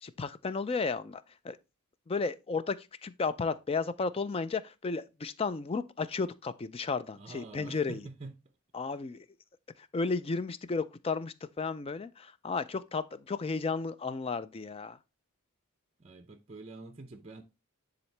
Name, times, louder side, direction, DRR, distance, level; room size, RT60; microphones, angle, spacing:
voice 1, 0.0-1.6 2.1-8.1 8.7-9.3 9.8-15.0, left 4 dB, 25° left, 0.3 m, -33 dB
voice 2, 7.1-8.4 16.0-17.4, right 3 dB, 30° right, 0.5 m, -46 dB
9.9 x 3.9 x 3.3 m
head